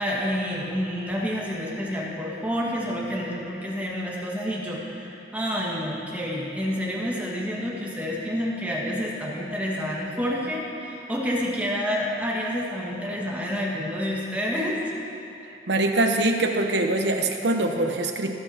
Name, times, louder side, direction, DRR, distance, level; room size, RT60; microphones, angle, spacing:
voice 1, 0.0-14.8, equal, 10° right, -4 dB, 1.6 m, -29 dB
voice 2, 15.7-18.3, right 2 dB, 70° right, 3 dB, 0.9 m, -23 dB
21.5 x 7.2 x 2.8 m, 2.7 s
head